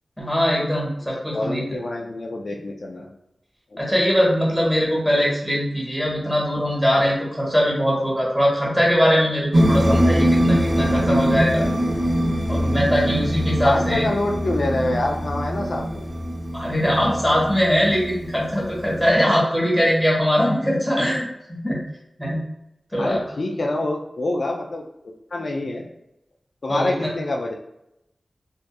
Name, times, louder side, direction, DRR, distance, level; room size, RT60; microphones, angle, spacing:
voice 1, 0.2-1.6 3.8-11.6 12.5-14.1 16.5-21.8 22.2-22.4 22.9-23.2 26.7-27.1, equal, 5° right, -5 dB, 1.2 m, -21 dB
voice 2, 1.3-3.1 3.7-3.9 13.6-16.1 23.0-24.8 25.3-25.9 26.6-27.5, left 2 dB, 70° left, 1 dB, 0.3 m, -26 dB
sound 1, 9.5-19.1, equal, 60° right, 0.7 m, -22 dB
2.6 x 2.3 x 2.2 m, 0.83 s
cardioid pair, 50°, 0 cm